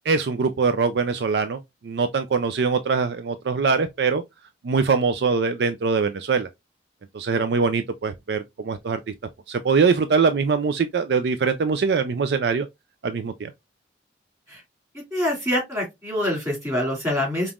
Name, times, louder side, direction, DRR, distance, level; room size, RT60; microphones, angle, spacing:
voice 1, 0.1-4.2 4.6-6.5 7.1-9.0 9.5-12.7 13.0-13.5, right 5 dB, 65° right, 0.4 m, -23 dB
voice 2, 15.1-17.5, left 1 dB, 15° right, 2.6 m, -25 dB
5.3 x 3.0 x 2.4 m
head